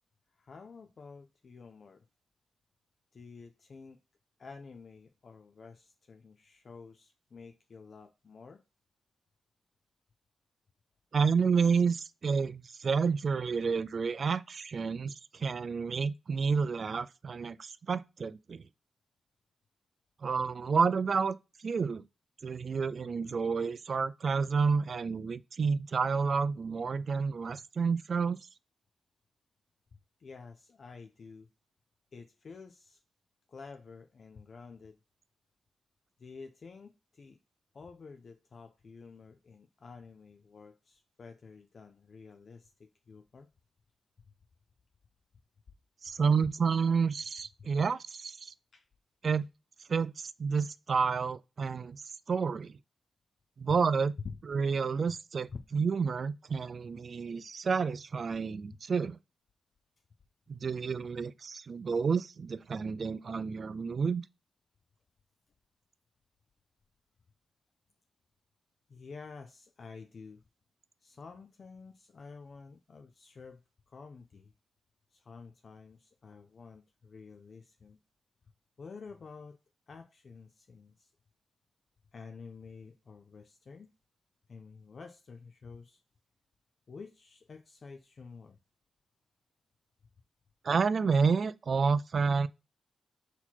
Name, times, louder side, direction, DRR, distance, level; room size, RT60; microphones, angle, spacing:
voice 1, 0.3-2.1 3.1-4.0 4.4-8.6 29.9-31.5 32.1-33.0 33.5-35.0 36.2-37.4 37.7-43.5 46.4-46.5 47.6-47.7 48.7-48.9 54.2-54.4 55.1-55.2 55.5-55.6 58.7-58.8 68.9-70.4 71.0-73.6 73.9-74.5 75.1-78.0 78.8-79.6 79.9-81.1 82.1-83.9 84.5-86.0 86.9-88.6, left 5 dB, 60° left, 0.4 m, -49 dB
voice 2, 11.1-18.6 20.2-22.0 22.4-28.4 46.0-48.5 49.2-49.4 49.9-52.8 53.6-54.1 54.5-59.2 60.5-64.2 90.6-92.5, right 5 dB, 60° right, 0.3 m, -30 dB
4.0 x 2.9 x 4.3 m
cardioid pair, 60°, 0 cm